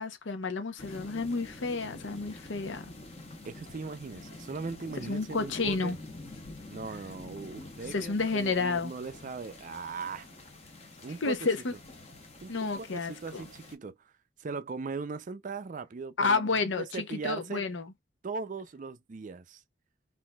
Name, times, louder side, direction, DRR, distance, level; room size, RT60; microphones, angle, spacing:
voice 1, 0.0-2.9 5.1-6.0 7.9-8.9 11.2-11.7 12.5-13.4 16.2-17.8, left 4 dB, 75° left, 0.7 m, -30 dB
sound 1, 0.8-13.8, left 2 dB, 35° left, 0.9 m, -47 dB
voice 2, 3.4-5.9 6.7-10.3 11.0-11.5 12.4-14.1 14.4-16.5 16.8-17.6 18.2-19.6, right 4 dB, 40° right, 0.4 m, -39 dB
3.9 x 2.6 x 2.3 m
head